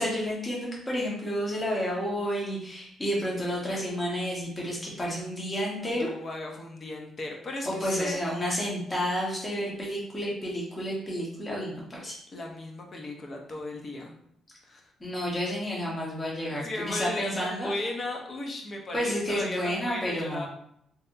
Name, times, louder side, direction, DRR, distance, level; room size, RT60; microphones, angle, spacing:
voice 1, 0.0-6.1 7.6-12.2 15.0-17.7 18.9-20.5, equal, 25° left, -4 dB, 1.2 m, -30 dB
voice 2, 5.8-8.2 12.3-14.1 14.6-14.9 16.4-20.5, left 2 dB, 40° left, 1 dB, 0.7 m, -36 dB
3.3 x 2.8 x 2.5 m, 0.70 s
cardioid pair, 90°, 0 cm